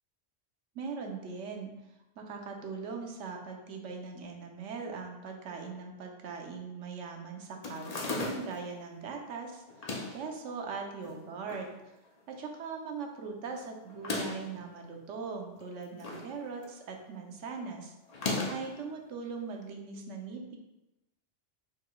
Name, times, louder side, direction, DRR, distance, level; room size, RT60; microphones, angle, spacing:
voice 1, 0.7-1.7 2.2-9.6 10.1-11.7 12.3-17.9 18.5-20.6, right 5 dB, 85° right, 3 dB, 1.0 m, -40 dB
sound 1, 7.6-8.7 9.7-10.3 11.0-11.7 12.1-12.2 12.3-12.4 13.9-14.5 15.6-16.3 16.6-17.0 18.1-18.8, left 3 dB, 45° left, 0.5 m, -36 dB
4.7 x 4.4 x 2.3 m, 0.96 s
omnidirectional pair, 1.2 m